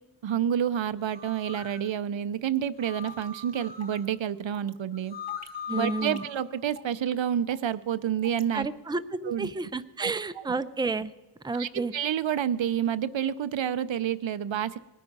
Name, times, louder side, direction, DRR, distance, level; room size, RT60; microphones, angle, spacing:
voice 1, 0.2-5.2 5.7-8.7 9.2-9.5 10.0-10.5 11.5-14.8, right 9 dB, 90° right, 14 dB, 0.5 m, -29 dB
sound 1, 1.1-1.8 2.8-4.0 4.9-6.4, left 6 dB, 70° left, 1.4 m, -39 dB
sound 2, 2.5-2.6 3.0-3.3 3.8-4.1 4.5-4.7 5.3-5.5 6.0-6.4 6.7-6.9 7.5-7.7 8.2-8.4, right 3 dB, 35° right, 0.9 m, -46 dB
voice 2, 5.7-6.2 8.5-11.1 11.4-11.9, right 3 dB, 10° right, 12 dB, 0.4 m, -31 dB
20.0 x 9.3 x 5.3 m, 1.1 s
wide cardioid pair, 65°, 44 cm